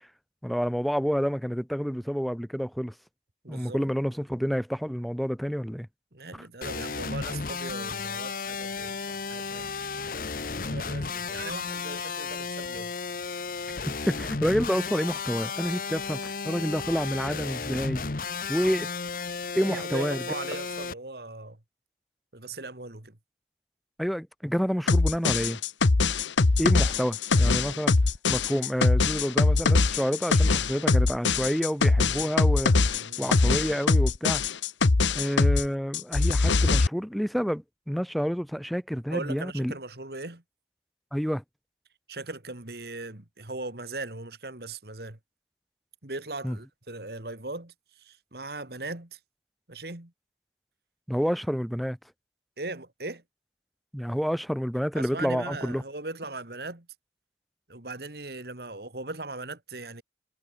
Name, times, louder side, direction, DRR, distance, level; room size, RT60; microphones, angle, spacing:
voice 1, 0.4-2.9 3.5-5.9 13.9-18.0 18.5-18.9 19.5-20.2 24.0-25.6 26.6-28.0 28.3-32.7 33.2-34.4 35.1-39.7 41.1-41.4 46.4-46.6 51.1-52.0 53.9-55.8, equal, ahead, 0.6 m, -28 dB
voice 2, 3.4-3.8 6.1-9.9 10.7-12.9 19.7-21.6 22.3-23.2 32.1-32.2 32.9-33.4 39.1-40.4 42.1-45.2 46.0-49.2 49.7-50.1 52.6-53.2 54.9-56.9 57.7-60.0, right 2 dB, 60° right, 2.3 m, -39 dB
sound 1, 6.6-20.9, left 4 dB, 50° left, 0.9 m, -34 dB
sound 2, 24.9-35.7 35.9-36.9, left 3 dB, 90° left, 0.9 m, -22 dB
head